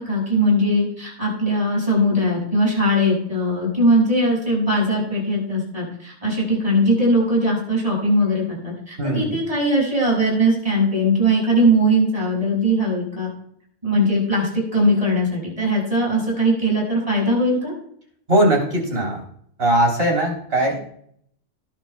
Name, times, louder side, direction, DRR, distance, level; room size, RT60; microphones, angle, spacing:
voice 1, 0.1-13.3 13.8-17.7, equal, 30° right, -3 dB, 5.9 m, -20 dB
voice 2, 9.0-9.4 18.3-19.2 19.6-20.9, right 1 dB, 50° right, 0 dB, 3.8 m, -19 dB
18.5 x 10.5 x 2.2 m, 0.66 s
omnidirectional pair, 1.3 m